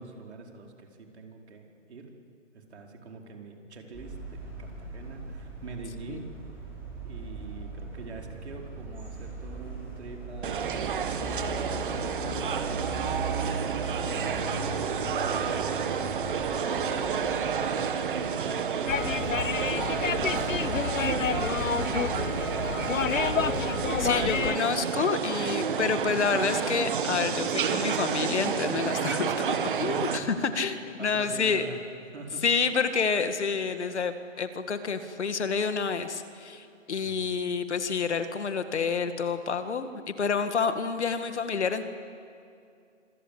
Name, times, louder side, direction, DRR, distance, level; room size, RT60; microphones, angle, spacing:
voice 1, 0.0-2.1 2.5-6.3 7.0-10.7 11.0-18.1 18.4-22.3 22.8-23.3 29.3-30.6 31.0-31.8 32.1-32.4 37.0-37.3, right 3 dB, 60° right, 2 dB, 4.7 m, -45 dB
sound 1, 3.9-18.7, right 2 dB, 5° right, 6.2 m, -39 dB
sound 2, 10.4-30.2, right 7 dB, 40° right, 1.8 m, -30 dB
sound 3, 18.9-24.6, left 7 dB, 85° left, 1.1 m, -29 dB
voice 2, 24.0-31.7 32.4-41.9, left 5 dB, 60° left, 9 dB, 2.1 m, -29 dB
26.5 x 23.5 x 8.2 m, 2.4 s
hypercardioid pair, 160°, 38 cm